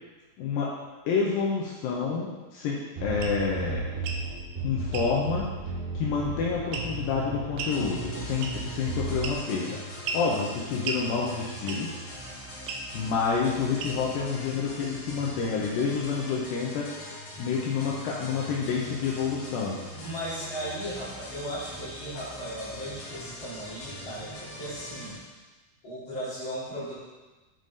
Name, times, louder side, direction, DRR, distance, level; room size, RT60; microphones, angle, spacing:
voice 1, 0.4-0.7 1.1-3.9 4.6-5.5 5.9-12.0 12.9-19.8, left 5 dB, 80° left, -4 dB, 2.4 m, -29 dB
sound 1, 3.0-9.4, right 2 dB, 30° right, 1.1 m, -34 dB
sound 2, 3.2-3.4 4.0-4.3 4.9-5.1 6.7-7.1 7.6-7.8 8.4-8.8 9.2-9.6 10.1-10.3 10.9-11.1 11.7-12.0 12.7-12.9 13.8-14.1, right 3 dB, 80° right, 1.9 m, -34 dB
sound 3, 7.7-25.2, left 1 dB, 60° left, 3.6 m, -42 dB
voice 2, 20.0-25.2 25.8-26.9, equal, 45° left, -9 dB, 1.9 m, -36 dB
9.1 x 5.0 x 2.6 m, 1.2 s
omnidirectional pair, 4.2 m